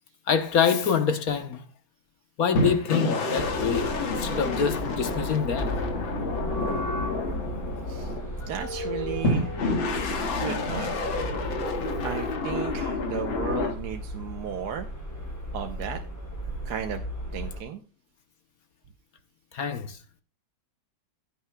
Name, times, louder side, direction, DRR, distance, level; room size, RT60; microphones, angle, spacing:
voice 1, 0.3-1.6 2.4-5.8 8.4-8.5 19.5-20.0, left 7 dB, 55° left, 1.2 m, -26 dB
sound 1, 2.5-8.5 9.2-13.7, left 2 dB, 85° left, 2.4 m, -29 dB
sound 2, 3.4-17.6, equal, 10° left, 2.7 m, -35 dB
voice 2, 7.9-9.7 10.3-10.9 12.0-14.9 15.5-16.0 16.6-17.0 17.3-17.8, right 8 dB, 60° right, 1.3 m, -35 dB
16.0 x 9.4 x 2.2 m
omnidirectional pair, 2.1 m